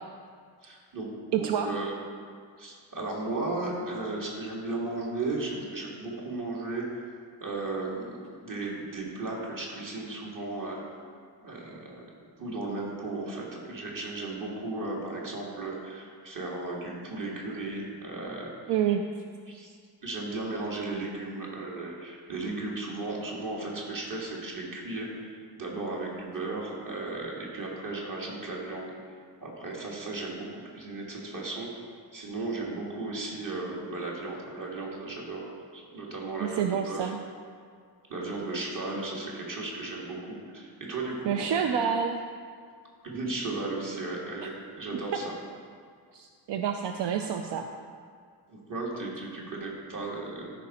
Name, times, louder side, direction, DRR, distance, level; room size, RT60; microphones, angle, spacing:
voice 1, 0.6-1.9 2.6-7.1 7.4-8.1 8.4-10.8 11.4-12.0 12.4-18.5 19.5-19.8 20.0-28.9 29.4-31.7 32.1-37.1 38.1-41.6 43.0-45.4 48.5-50.5, right 2 dB, 50° right, -3 dB, 2.0 m, -35 dB
voice 2, 1.3-1.7 18.7-19.0 36.4-37.2 41.3-42.2 46.1-47.6, right 8 dB, 80° right, 5 dB, 0.6 m, -28 dB
13.5 x 5.4 x 4.2 m, 2.1 s
wide cardioid pair, 160°, 41 cm